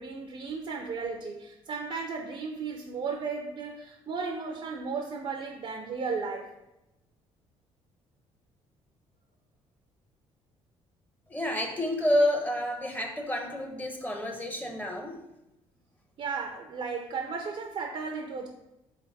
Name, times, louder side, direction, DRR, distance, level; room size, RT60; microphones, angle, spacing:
voice 1, 0.0-6.5 16.2-18.5, right 5 dB, 55° right, 2 dB, 0.5 m, -35 dB
voice 2, 11.3-15.2, left 1 dB, 15° left, 3 dB, 0.7 m, -29 dB
3.4 x 3.1 x 4.0 m, 0.93 s
supercardioid pair, 75°, 12 cm